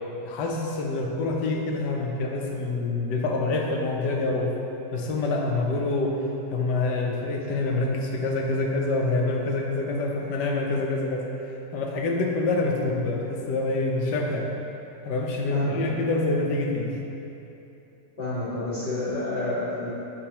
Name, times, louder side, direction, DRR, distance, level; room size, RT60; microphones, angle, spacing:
voice 1, 0.2-4.5 4.9-6.2 6.5-14.5 15.0-17.0, left 2 dB, 85° left, 0 dB, 1.4 m, -26 dB
voice 2, 15.5-15.9 18.2-19.9, left 2 dB, 40° left, -12 dB, 1.8 m, -29 dB
10.0 x 4.6 x 2.9 m, 3.0 s
omnidirectional pair, 1.8 m